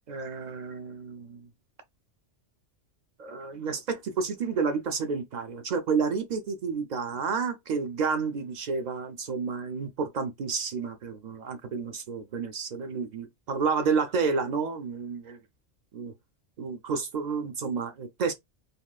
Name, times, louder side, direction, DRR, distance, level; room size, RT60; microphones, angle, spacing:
voice 1, 0.1-1.5 3.2-15.4 15.9-16.1 16.6-18.3, right 5 dB, 55° right, 0.5 m, -30 dB
3.5 x 2.3 x 2.3 m
omnidirectional pair, 1.2 m